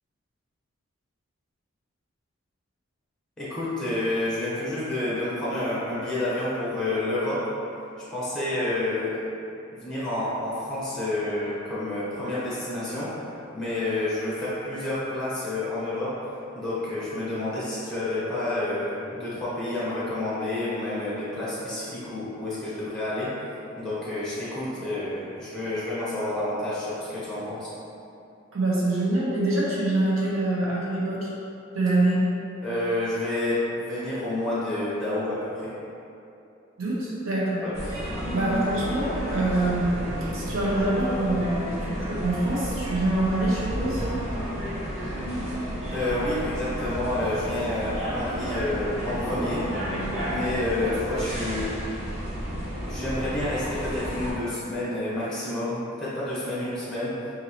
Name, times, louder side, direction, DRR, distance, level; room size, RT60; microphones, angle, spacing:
voice 1, 3.4-7.4 8.1-9.2 9.7-13.3 13.5-16.1 16.5-23.3 23.8-27.7 32.6-35.7 37.6-37.7 45.9-49.6 50.3-51.8 52.9-57.1, left 1 dB, 5° left, -10 dB, 0.9 m, -29 dB
voice 2, 28.5-31.3 31.7-32.2 36.8-37.7 38.3-44.0, right 2 dB, 85° right, -6 dB, 0.8 m, -25 dB
sound 1, 37.7-54.3, equal, 35° right, 1.1 m, -31 dB
3.9 x 2.6 x 2.8 m, 2.7 s
head